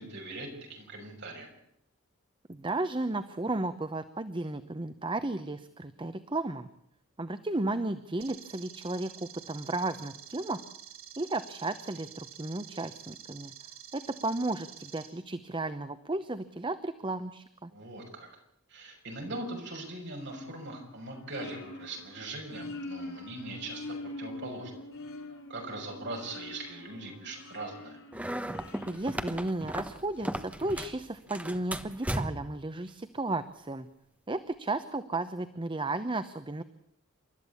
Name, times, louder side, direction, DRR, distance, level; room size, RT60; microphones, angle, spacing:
voice 1, 0.0-1.5 17.7-18.3 18.7-24.8 25.5-28.0, right 2 dB, 55° right, 1 dB, 6.3 m, -41 dB
voice 2, 2.5-6.7 7.2-10.6 11.2-13.5 13.9-17.7 28.9-33.9 34.3-36.6, right 2 dB, 25° right, 11 dB, 0.8 m, -34 dB
sound 1, 8.2-15.1, right 10 dB, 80° right, 4.6 m, -48 dB
sound 2, 20.2-30.0, left 2 dB, 80° left, 4.9 m, -45 dB
sound 3, 28.1-31.0 31.3-32.6, right 1 dB, 5° right, 1.1 m, -36 dB
28.5 x 13.0 x 8.5 m, 0.75 s
head